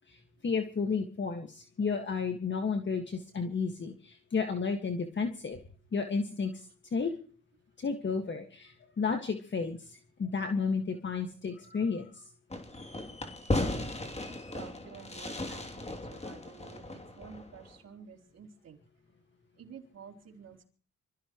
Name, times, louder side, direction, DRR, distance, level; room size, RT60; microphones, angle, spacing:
voice 1, 0.1-5.6 5.9-7.1 7.8-12.3, left 5 dB, 40° left, 5 dB, 1.9 m, -32 dB
Fireworks, 12.5-17.7, left 2 dB, 20° left, 3.0 m, -36 dB
voice 2, 14.5-18.8 19.6-20.6, right 6 dB, 55° right, 2 dB, 4.2 m, -51 dB
26.5 x 15.5 x 3.1 m, 0.40 s
cardioid pair, 90°, 30 cm